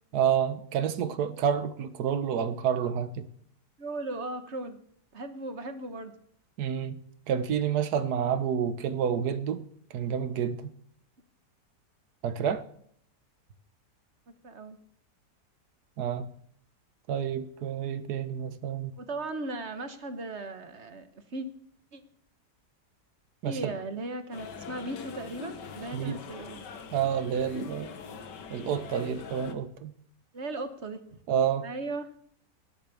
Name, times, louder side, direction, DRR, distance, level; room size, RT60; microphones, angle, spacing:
voice 1, 0.1-3.3 6.6-7.0 7.3-9.6 9.9-10.7 12.2-12.6 16.0-16.3 17.1-18.9 23.4-23.8 25.9-26.2 26.9-27.9 28.5-29.9 31.3-31.7, right 8 dB, 65° right, 1.5 m, -29 dB
voice 2, 3.8-4.8 5.1-6.1 14.4-14.8 19.0-21.5 21.9-22.0 23.4-26.6 30.3-31.2 31.6-32.2, right 2 dB, 45° right, 1.5 m, -37 dB
sound 1, 24.3-29.5, left 6 dB, 80° left, 1.9 m, -43 dB
16.0 x 11.0 x 7.0 m
omnidirectional pair, 1.8 m